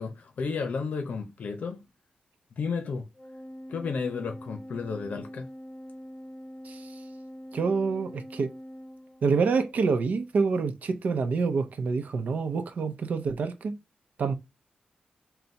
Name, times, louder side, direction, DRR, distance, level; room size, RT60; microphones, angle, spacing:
voice 1, 0.0-1.8 2.6-3.1 3.7-5.5, left 5 dB, 75° left, 0.7 m, -32 dB
Organ, 3.1-9.7, equal, 40° left, 1.9 m, -44 dB
voice 2, 7.5-8.5 9.2-13.8 14.2-14.3, right 4 dB, 70° right, 0.7 m, -27 dB
4.0 x 2.3 x 4.6 m
wide cardioid pair, 105°, 3 cm